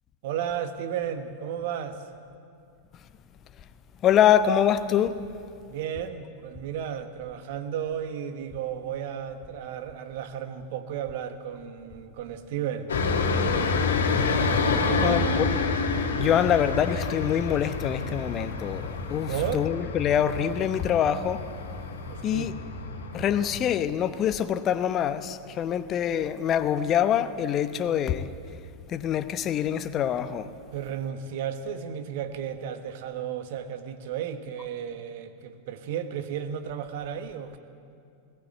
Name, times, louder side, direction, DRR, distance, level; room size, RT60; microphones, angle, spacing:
voice 1, 0.2-2.0 5.7-13.2 14.7-15.3 19.3-19.7 22.1-22.5 30.7-37.6, right 9 dB, 50° right, 1.4 m, -33 dB
voice 2, 4.0-5.2 15.0-15.7 15.9-21.4 22.2-22.5 23.1-28.3 28.9-30.5, left 9 dB, 30° left, 0.9 m, -25 dB
sound 1, 12.9-23.6, left 4 dB, 65° left, 2.0 m, -28 dB
20.5 x 17.5 x 8.0 m
figure-of-eight pair, 90°, 0 cm